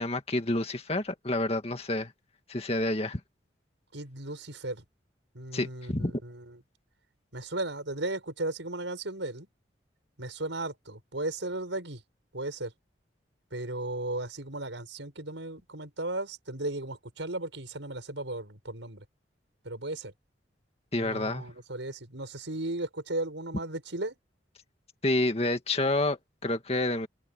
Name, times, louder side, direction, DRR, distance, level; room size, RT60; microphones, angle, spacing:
voice 1, 0.0-2.1 2.5-3.2 5.5-6.1 20.9-21.5 25.0-27.1, left 2 dB, 35° left, 2.1 m, -29 dB
voice 2, 3.9-4.8 5.3-6.6 7.3-9.5 10.2-12.0 12.3-12.7 13.5-19.0 19.6-20.1 21.0-24.2, right 2 dB, 85° right, 5.7 m, -35 dB
open air
head